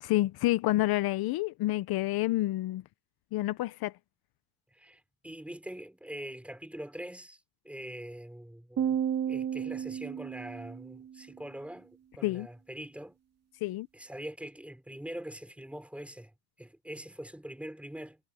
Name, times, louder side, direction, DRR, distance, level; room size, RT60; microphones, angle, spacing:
voice 1, 0.0-2.8 3.3-3.9 12.2-12.5 13.6-13.9, left 17 dB, 50° left, 0.9 m, -28 dB
voice 2, 4.7-13.1 13.9-16.3 16.6-18.2, right 1 dB, 5° right, 4.9 m, -43 dB
sound 1, 8.8-11.2, right 9 dB, 35° right, 2.4 m, -32 dB
cardioid pair, 125°, 46 cm